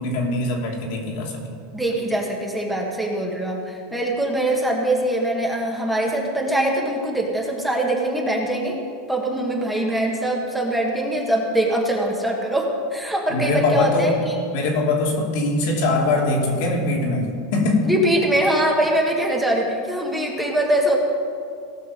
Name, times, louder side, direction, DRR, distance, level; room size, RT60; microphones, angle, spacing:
voice 1, 0.0-1.5 13.3-14.1 14.5-17.9, left 2 dB, 65° left, -1 dB, 2.5 m, -22 dB
voice 2, 1.7-8.8 9.1-14.4 17.8-21.0, right 1 dB, 5° right, -1 dB, 1.7 m, -23 dB
18.0 x 6.1 x 5.2 m, 2.2 s
supercardioid pair, 130°, 0 cm